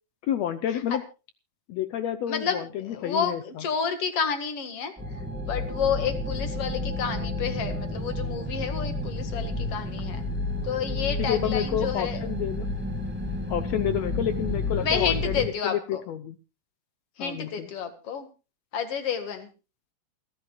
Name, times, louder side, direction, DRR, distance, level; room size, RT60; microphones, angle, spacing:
voice 1, 0.3-1.0 1.7-3.6 11.2-12.7 13.5-16.3 17.2-17.7, left 10 dB, 70° left, 10 dB, 1.7 m, -29 dB
voice 2, 2.3-10.2 10.6-12.2 14.8-16.0 17.2-18.3 18.7-19.5, left 7 dB, 50° left, 8 dB, 2.5 m, -30 dB
sound 1, 5.0-15.5, left 2 dB, 5° right, 1.0 m, -31 dB
28.5 x 11.5 x 2.4 m, 0.31 s
omnidirectional pair, 3.8 m